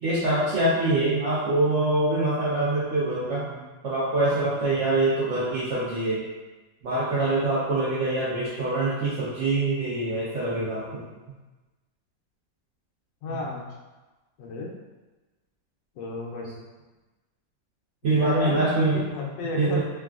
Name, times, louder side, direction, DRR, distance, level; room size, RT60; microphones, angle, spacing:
voice 1, 0.0-6.2 6.8-11.0 13.3-13.4 18.0-19.0 19.6-19.8, right 2 dB, 85° right, -9 dB, 0.6 m, -24 dB
voice 2, 13.2-13.7 14.4-14.7 15.9-16.6 18.0-19.8, left 3 dB, 80° left, -1 dB, 1.3 m, -33 dB
3.4 x 2.3 x 2.3 m, 1.2 s
omnidirectional pair, 2.0 m